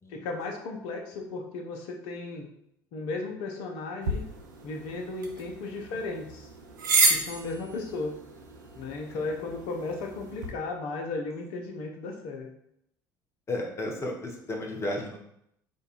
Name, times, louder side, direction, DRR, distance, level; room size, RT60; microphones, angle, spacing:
voice 1, 0.1-2.5 2.9-4.2 4.6-6.5 7.1-8.2 8.8-12.5, left 3 dB, 55° left, 2 dB, 0.6 m, -35 dB
sound 1, 4.0-10.5, right 3 dB, 75° right, 0.5 m, -31 dB
voice 2, 13.5-15.2, left 1 dB, 25° left, 1 dB, 0.8 m, -33 dB
5.0 x 2.2 x 2.5 m, 0.74 s
figure-of-eight pair, 60°, 10 cm